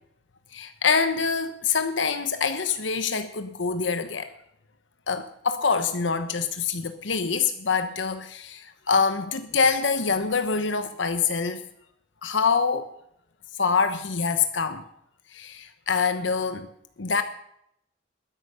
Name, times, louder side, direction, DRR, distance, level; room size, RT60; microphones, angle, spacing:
voice 1, 0.5-4.3 5.1-11.6 12.2-12.9 13.6-14.8 15.3-16.7 17.0-17.2, left 5 dB, 80° left, 9 dB, 1.1 m, -25 dB
21.0 x 9.9 x 6.8 m, 0.76 s
head